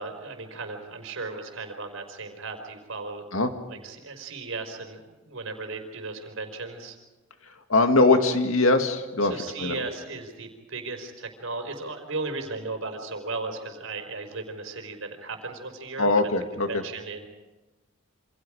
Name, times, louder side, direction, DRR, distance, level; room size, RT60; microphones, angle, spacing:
voice 1, 0.0-3.2 3.7-5.0 5.3-7.0 9.2-16.1 16.7-17.3, right 3 dB, 80° right, 5 dB, 4.5 m, -36 dB
voice 2, 7.7-9.3 9.6-9.8 16.0-16.8, left 2 dB, 85° left, 6 dB, 2.2 m, -21 dB
28.0 x 27.0 x 5.0 m, 1.2 s
head